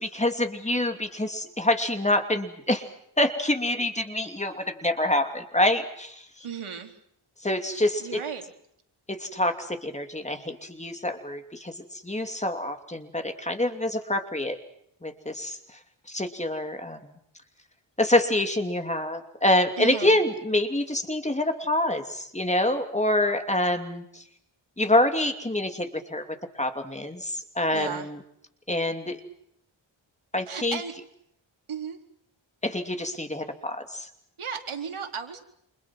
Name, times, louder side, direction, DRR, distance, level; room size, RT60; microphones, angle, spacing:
voice 1, 0.0-2.8 3.2-6.2 7.4-8.1 9.1-14.6 15.0-15.6 16.1-17.1 18.0-24.2 24.8-26.3 26.6-28.0 28.7-29.2 30.3-30.8 32.6-34.1, left 1 dB, 15° left, 6 dB, 2.8 m, -26 dB
voice 2, 6.4-6.9 7.7-8.5 19.8-20.2 27.7-28.1 30.4-30.9 31.7-32.0 34.4-35.4, right 7 dB, 85° right, 4 dB, 4.4 m, -35 dB
29.5 x 27.5 x 6.1 m, 0.73 s
wide cardioid pair, 140°, 48 cm